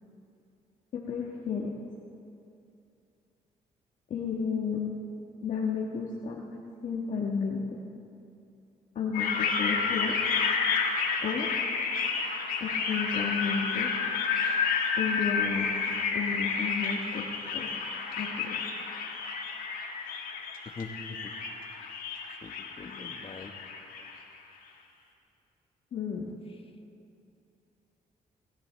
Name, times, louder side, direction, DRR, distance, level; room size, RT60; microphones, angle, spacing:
voice 1, 0.9-1.7 4.1-4.9 5.4-7.6 8.9-10.1 11.2-11.5 12.6-13.9 15.0-15.7 16.1-17.3 17.5-17.7 18.2-18.6 25.9-26.3, left 6 dB, 65° left, -2 dB, 1.5 m, -32 dB
sound 1, 9.1-24.2, left 5 dB, 80° left, 1.8 m, -30 dB
voice 2, 20.6-21.3 22.4-23.5, left 4 dB, 40° left, 5 dB, 1.4 m, -42 dB
24.0 x 14.0 x 3.4 m, 2.6 s
cardioid pair, 85°, 14 cm